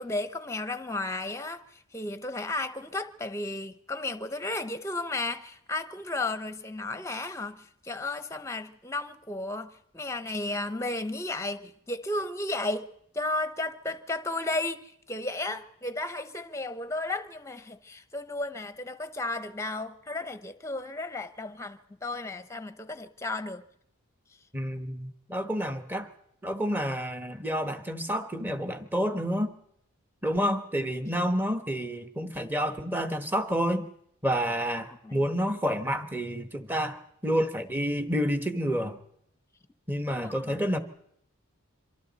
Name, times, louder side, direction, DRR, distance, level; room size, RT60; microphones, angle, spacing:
voice 1, 0.0-12.9 13.1-23.6 35.0-35.2 40.1-40.6, left 2 dB, 15° left, 0.8 m, -34 dB
voice 2, 24.5-26.1 26.4-29.5 30.2-33.9 34.2-39.0 39.9-40.8, equal, 10° right, 1.1 m, -29 dB
26.5 x 24.0 x 4.1 m
head